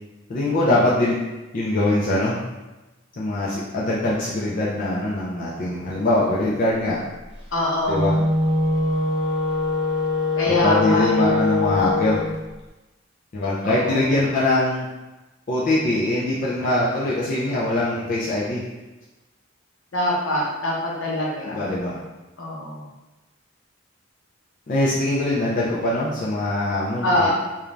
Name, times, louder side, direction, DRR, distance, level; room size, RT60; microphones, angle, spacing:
voice 1, 0.3-1.1 1.5-2.4 3.2-7.0 7.9-8.1 10.5-12.2 13.3-14.9 15.5-18.6 21.5-22.0 24.7-27.3, left 1 dB, 40° left, -7 dB, 0.4 m, -22 dB
voice 2, 7.5-8.1 10.3-11.4 13.4-14.1 19.9-21.6 22.4-22.9 27.0-27.3, left 1 dB, 75° left, -4 dB, 0.7 m, -24 dB
Wind instrument woodwind instrument, 7.8-12.3, left 3 dB, 30° right, 0.5 m, -23 dB
2.5 x 2.3 x 3.1 m, 1.1 s
head